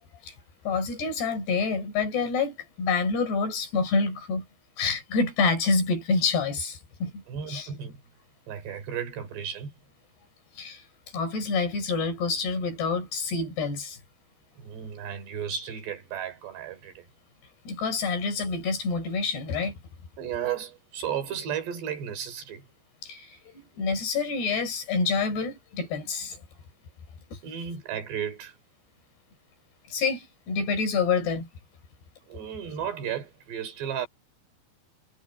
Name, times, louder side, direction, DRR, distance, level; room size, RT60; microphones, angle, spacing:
voice 1, 0.7-4.5 4.8-7.2 7.5-7.7 10.6-10.8 11.1-14.0 17.7-19.8 23.0-26.4 27.3-27.4 29.9-31.5, left 4 dB, 65° left, 6.9 m, -27 dB
voice 2, 7.3-8.0 8.5-9.7 14.6-17.1 20.2-22.7 27.4-28.6 32.3-34.1, right 8 dB, 70° right, 6.0 m, -34 dB
omnidirectional pair, 5.1 m